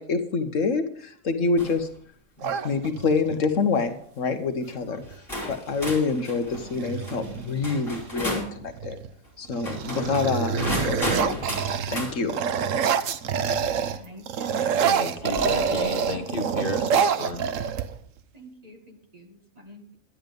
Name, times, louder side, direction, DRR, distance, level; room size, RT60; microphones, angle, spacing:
voice 1, 0.0-1.9 2.4-9.0 9.4-11.6 11.9-12.3, left 4 dB, 65° left, 8 dB, 1.3 m, -27 dB
sound 1, 1.6-1.9 2.4-2.7 3.5-3.8 4.7-4.8 5.3-8.6 9.5-12.2 13.9-14.0 15.3-16.0, left 1 dB, 15° left, 4.4 m, -33 dB
sound 2, 2.4-3.3 5.0-5.2 5.5-6.0 6.5-8.1 8.7-9.1 9.4-14.0 14.3-18.2, right 7 dB, 65° right, 1.1 m, -27 dB
voice 2, 13.9-14.7 15.3-16.1 18.3-19.9, left 1 dB, 25° right, 1 dB, 1.9 m, -44 dB
voice 3, 14.8-17.5, left 2 dB, 40° left, 4 dB, 1.4 m, -32 dB
11.5 x 10.5 x 5.2 m, 0.62 s
omnidirectional pair, 1.5 m